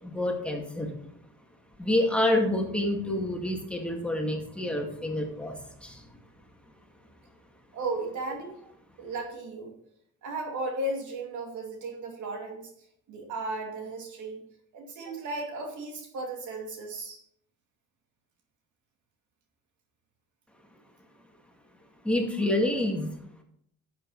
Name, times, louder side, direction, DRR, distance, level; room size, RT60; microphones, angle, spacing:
voice 1, 0.0-0.9 1.8-6.0 22.0-23.1, left 1 dB, 5° left, 1 dB, 2.2 m, -28 dB
voice 2, 7.7-8.5 9.0-9.8 10.2-12.7 13.1-14.4 14.7-17.2, right 2 dB, 75° right, 2 dB, 2.4 m, -35 dB
10.5 x 7.5 x 4.1 m, 0.68 s
cardioid pair, 90°, 30 cm